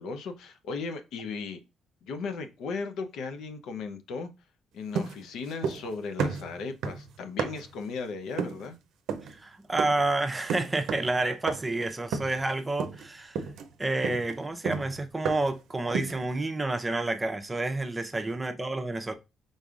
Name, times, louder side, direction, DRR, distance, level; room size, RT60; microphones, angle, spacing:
voice 1, 0.0-1.6 2.0-4.3 4.7-8.8, left 4 dB, 80° left, 0.7 m, -36 dB
sound 1, 4.9-5.9 6.2-7.8 8.4-8.7 9.1-9.4 9.8-10.1 10.5-11.2 11.5-11.8 12.1-12.5 12.8-13.1 13.3-15.6 15.9-16.3, right 6 dB, 85° right, 0.6 m, -33 dB
voice 2, 9.3-13.5 13.8-19.1, right 2 dB, 20° right, 0.7 m, -29 dB
5.0 x 3.9 x 2.4 m
cardioid pair, 90°, 0 cm